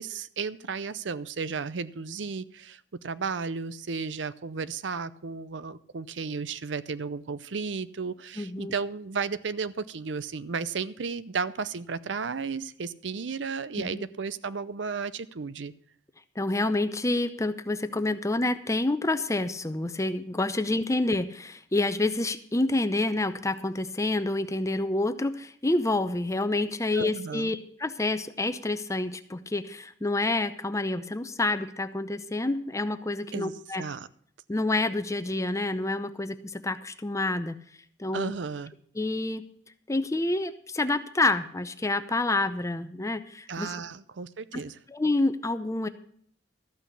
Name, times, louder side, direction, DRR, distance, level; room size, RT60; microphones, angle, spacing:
voice 1, 0.0-15.7 27.0-27.5 33.3-34.1 38.1-38.7 43.5-44.8, right 5 dB, 75° right, 16 dB, 0.6 m, -34 dB
voice 2, 8.4-8.7 13.8-14.0 16.4-33.8 34.5-37.6 38.0-38.3 39.0-39.4 39.9-43.7 44.5-44.6 44.9-45.9, left 2 dB, 15° left, 11 dB, 0.6 m, -28 dB
13.5 x 6.2 x 8.1 m, 0.62 s
head